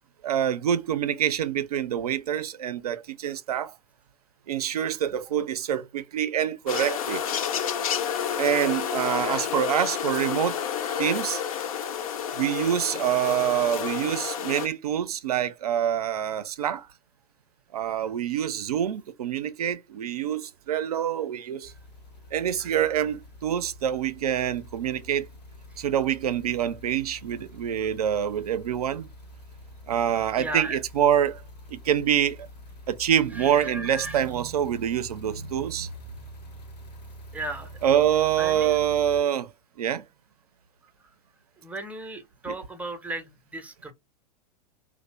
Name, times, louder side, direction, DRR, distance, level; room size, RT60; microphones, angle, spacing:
voice 1, 0.2-3.7 4.5-7.2 8.4-10.6 11.0-11.4 12.4-16.9 17.7-21.7 22.3-25.3 25.8-29.1 29.9-31.4 31.7-32.4 32.9-35.9 37.8-39.5 39.8-40.0 42.5-42.6, right 10 dB, 65° right, 0.4 m, -26 dB
sound 1, 6.7-14.7, left 8 dB, 60° left, 0.5 m, -30 dB
sound 2, 21.6-39.2, equal, 75° left, 0.8 m, -46 dB
voice 2, 30.4-30.8 33.3-34.3 37.3-37.7 38.4-38.7 41.6-43.9, right 2 dB, 5° right, 0.5 m, -35 dB
2.6 x 2.0 x 3.0 m
figure-of-eight pair, 95°, 21 cm